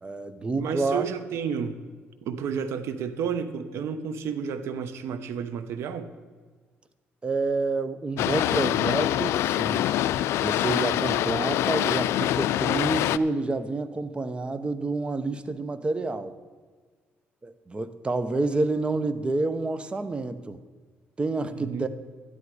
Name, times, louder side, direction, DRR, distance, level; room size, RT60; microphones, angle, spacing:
voice 1, 0.0-1.1 7.2-9.9 10.4-16.4 17.4-20.6 21.2-21.9, right 3 dB, 25° right, 11 dB, 0.9 m, -28 dB
voice 2, 0.5-1.8 2.2-6.1 21.5-21.9, right 7 dB, 80° right, 11 dB, 1.0 m, -31 dB
Boat Water vehicle, 8.2-13.2, left 13 dB, 85° left, 0.3 m, -25 dB
12.0 x 10.5 x 4.9 m, 1.5 s
cardioid pair, 100°, 4 cm